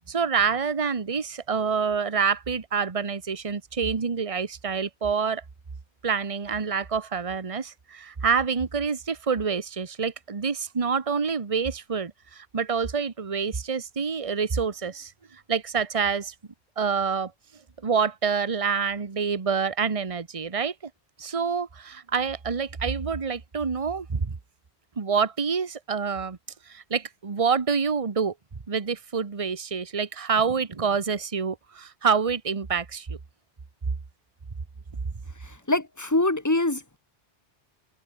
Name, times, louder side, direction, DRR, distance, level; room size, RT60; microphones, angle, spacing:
voice 1, 0.1-5.4 6.0-15.1 15.5-16.3 16.8-17.3 17.8-20.7 21.2-24.3 25.0-26.4 26.7-28.3 28.7-33.2, right 6 dB, 30° right, 1.2 m, -27 dB
voice 2, 35.4-37.0, left 2 dB, 15° left, 2.0 m, -25 dB
omnidirectional pair, 1.1 m